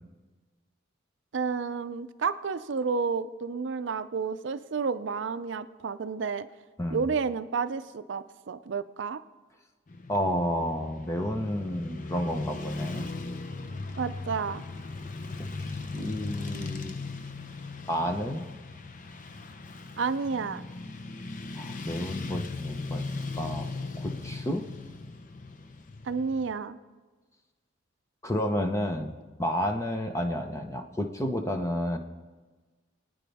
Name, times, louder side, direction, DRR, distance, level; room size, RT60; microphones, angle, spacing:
voice 1, 1.3-6.5 6.9-9.2 14.0-14.6 20.0-20.6 26.0-26.8, right 5 dB, 65° right, 12 dB, 0.5 m, -31 dB
Motorcycle / Traffic noise roadway noise, 9.9-26.5, left 3 dB, 40° left, 0.7 m, -38 dB
voice 2, 10.1-13.1 15.6-17.0 17.9-18.5 21.6-23.0 23.3-23.7 24.0-24.6 28.2-29.1 29.4-32.0, equal, 15° left, 4 dB, 0.9 m, -30 dB
24.5 x 9.2 x 3.5 m, 1.3 s
head